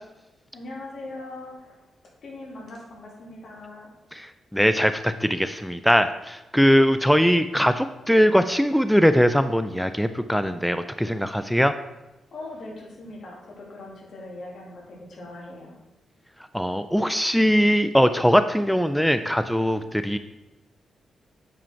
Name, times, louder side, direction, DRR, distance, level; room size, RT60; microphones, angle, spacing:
voice 1, 0.5-1.7 2.2-3.9 12.3-15.7, left 2 dB, 65° left, -2 dB, 2.8 m, -40 dB
voice 2, 4.1-11.7 16.5-20.2, equal, ahead, 10 dB, 0.4 m, -21 dB
8.8 x 5.0 x 4.6 m, 1.0 s
cardioid pair, 65°, 0 cm